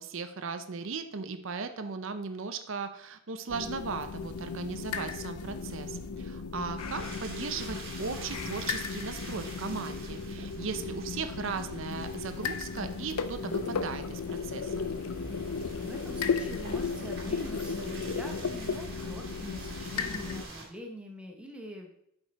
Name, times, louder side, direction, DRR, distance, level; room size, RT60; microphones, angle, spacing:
voice 1, 0.0-14.7, right 4 dB, 60° right, 9 dB, 0.6 m, -37 dB
sound 1, 3.5-20.4, left 5 dB, 90° left, 0.6 m, -35 dB
sound 2, 6.8-20.6, right 2 dB, 45° right, 2.0 m, -46 dB
voice 2, 15.8-21.9, equal, 5° right, 2 dB, 0.9 m, -44 dB
8.2 x 5.3 x 4.1 m, 0.75 s
head